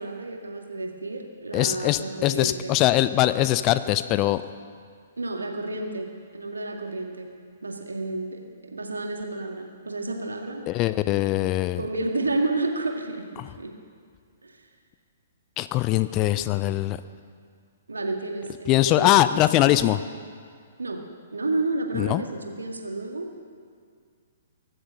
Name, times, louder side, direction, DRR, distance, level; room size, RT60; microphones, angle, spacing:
voice 1, 0.0-2.8 5.2-7.3 7.6-10.6 11.7-13.7 14.4-14.6 17.9-19.9 20.8-21.0 21.3-23.3, right 2 dB, 75° right, 2 dB, 2.1 m, -31 dB
voice 2, 1.5-4.4 10.7-11.8 15.6-17.0 18.7-20.0 21.9-22.2, left 15 dB, 30° left, 13 dB, 0.5 m, -22 dB
23.0 x 7.8 x 6.5 m, 2.1 s
figure-of-eight pair, 120°, 0 cm